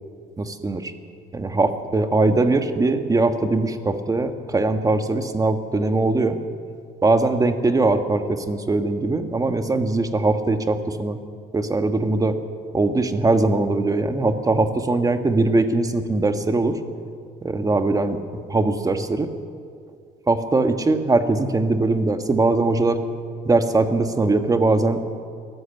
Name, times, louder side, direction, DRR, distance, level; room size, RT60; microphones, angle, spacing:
voice 1, 0.4-0.9 1.3-6.4 7.0-11.2 11.5-12.4 12.7-16.8 17.4-18.2 18.5-19.3 20.3-23.0 23.4-25.2, right 2 dB, 20° right, 7 dB, 1.7 m, -21 dB
23.0 x 14.5 x 9.2 m, 2.2 s
cardioid pair, 110°, 17 cm